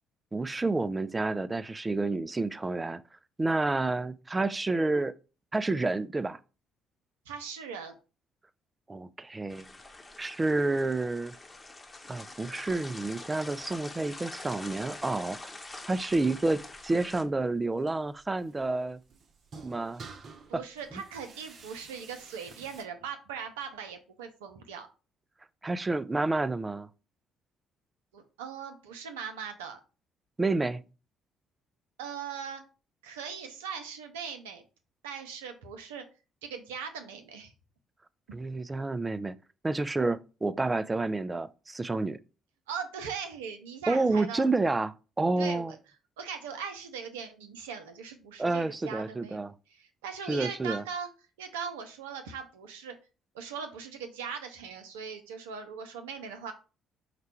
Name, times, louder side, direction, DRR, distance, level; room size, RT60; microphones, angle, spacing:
voice 1, 0.3-3.0 3.4-5.1 5.5-6.4 8.9-9.6 10.2-11.3 12.1-15.5 15.9-19.0 19.6-20.0 20.5-20.6 25.6-26.9 30.4-30.8 38.3-39.4 39.6-42.2 43.9-45.7 48.4-49.5 50.3-50.8, right 2 dB, 20° right, 0.4 m, -29 dB
voice 2, 7.3-8.0 20.5-24.9 28.1-29.8 32.0-32.6 33.0-34.6 35.0-36.0 36.4-37.5 38.3-38.4 42.7-44.5 45.4-45.8 46.2-49.4 49.7-51.1 51.4-53.0 53.3-56.5, right 6 dB, 85° right, 0.6 m, -40 dB
sound 1, 9.5-17.2, left 2 dB, 25° left, 0.9 m, -45 dB
sound 2, 16.6-22.8, right 4 dB, 55° right, 0.7 m, -52 dB
4.9 x 2.3 x 4.3 m
hypercardioid pair, 50°, 0 cm